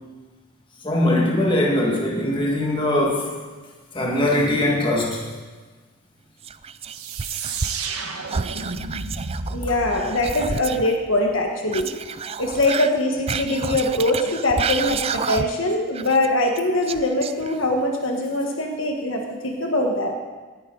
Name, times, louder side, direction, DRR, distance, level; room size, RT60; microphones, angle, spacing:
voice 1, 0.8-3.3 3.9-5.2 9.7-9.8, left 1 dB, 25° left, -1 dB, 1.9 m, -21 dB
Whispering, 6.4-8.0 8.3-10.9 11.7-15.7 15.9-17.8, right 6 dB, 30° right, 0.3 m, -30 dB
sound 1, 6.9-11.4, right 4 dB, 85° right, 1.2 m, -32 dB
voice 2, 9.5-11.9 12.4-20.1, left 1 dB, 65° left, 1 dB, 1.5 m, -22 dB
18.0 x 9.7 x 4.0 m, 1.3 s
head